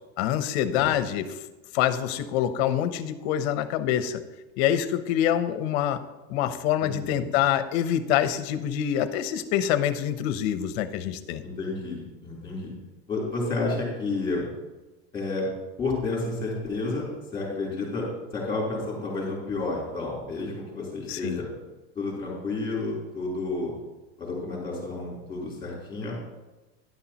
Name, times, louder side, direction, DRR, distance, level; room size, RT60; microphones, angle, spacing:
voice 1, 0.2-1.3 1.7-4.2 4.6-6.0 6.3-11.4 21.1-21.4, left 10 dB, 55° left, 12 dB, 0.9 m, -25 dB
voice 2, 6.8-7.2 11.4-12.7 13.1-14.4 15.1-15.5 15.8-18.1 18.3-21.5 22.0-23.7 24.2-26.1, left 3 dB, 10° left, -4 dB, 3.6 m, -31 dB
11.5 x 11.0 x 3.0 m, 1.1 s
supercardioid pair, 160°, 39 cm